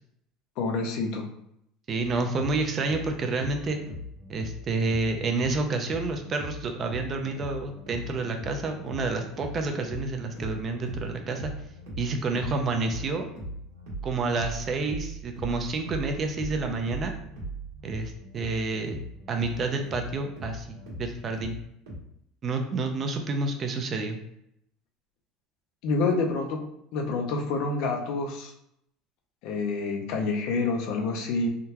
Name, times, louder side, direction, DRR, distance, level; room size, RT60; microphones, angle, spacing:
voice 1, 0.6-1.3 25.8-26.6 26.9-28.5 29.4-31.5, left 3 dB, 65° left, 3 dB, 0.6 m, -27 dB
voice 2, 1.9-3.8 4.3-11.5 12.0-13.2 14.0-17.1 17.8-21.6 22.4-24.2, right 3 dB, 35° right, 5 dB, 0.4 m, -29 dB
sound 1, 2.0-22.0, equal, 90° right, 1.4 m, -40 dB
3.6 x 2.2 x 2.8 m, 0.76 s
supercardioid pair, 130°, 0 cm